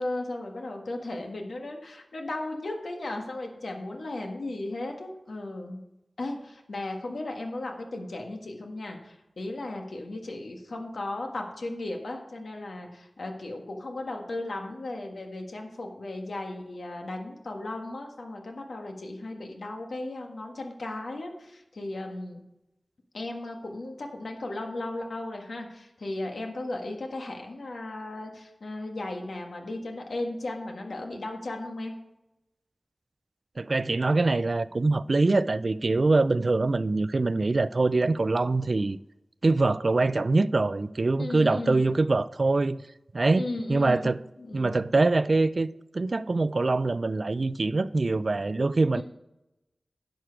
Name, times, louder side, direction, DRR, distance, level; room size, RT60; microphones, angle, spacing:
voice 1, 0.0-5.8 6.2-22.4 23.1-31.9 41.2-42.0 43.3-44.8 48.9-49.0, left 2 dB, 85° left, 1.6 m, -36 dB
voice 2, 33.6-39.0 39.4-42.8 43.1-44.2 44.5-45.7 45.9-49.0, right 3 dB, 55° right, 0.4 m, -24 dB
10.5 x 6.5 x 4.7 m
wide cardioid pair, 75°, 0 cm